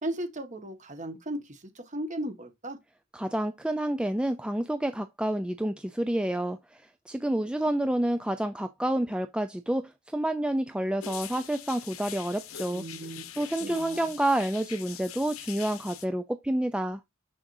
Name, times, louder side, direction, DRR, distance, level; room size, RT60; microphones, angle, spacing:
voice 1, 0.0-2.8 12.7-14.1, right 1 dB, 35° right, 1.5 m, -36 dB
voice 2, 3.1-12.8 13.3-17.0, right 1 dB, 5° right, 0.4 m, -29 dB
sound 1, 11.0-16.1, left 11 dB, 70° left, 1.0 m, -43 dB
7.2 x 6.3 x 2.6 m
head